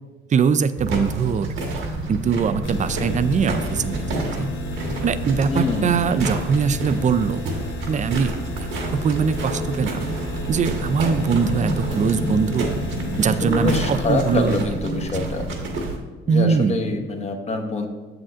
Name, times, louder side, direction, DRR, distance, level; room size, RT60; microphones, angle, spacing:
voice 1, 0.3-1.5 2.1-4.5 5.0-7.4 7.9-8.7 9.0-10.1 10.5-12.7 13.2-15.0 16.3-17.1, right 6 dB, 40° right, 13 dB, 0.4 m, -22 dB
sound 1, 0.8-16.0, right 2 dB, 80° right, 1.4 m, -28 dB
sound 2, 2.6-14.6, left 5 dB, 80° left, 0.8 m, -36 dB
voice 2, 5.5-6.0 13.4-15.5 16.3-17.9, left 2 dB, 35° left, 3 dB, 1.0 m, -25 dB
Race car auto racing / Accelerating revving vroom, 8.4-13.5, left 2 dB, 65° right, 0.9 m, -41 dB
7.6 x 7.4 x 2.5 m, 1.2 s
cardioid pair, 90°, 20 cm